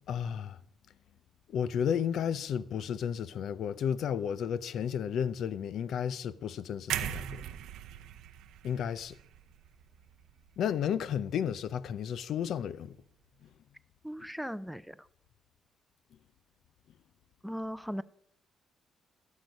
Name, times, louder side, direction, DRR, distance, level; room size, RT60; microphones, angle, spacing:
voice 1, 0.1-0.6 1.5-7.4 8.6-9.2 10.6-13.0, left 8 dB, 70° left, 0.5 m, -32 dB
sound 1, 6.9-10.9 11.3-11.5, right 11 dB, 85° right, 0.6 m, -40 dB
voice 2, 14.0-15.0 17.4-18.0, equal, ahead, 0.5 m, -38 dB
16.5 x 6.5 x 5.3 m
cardioid pair, 90°, 0 cm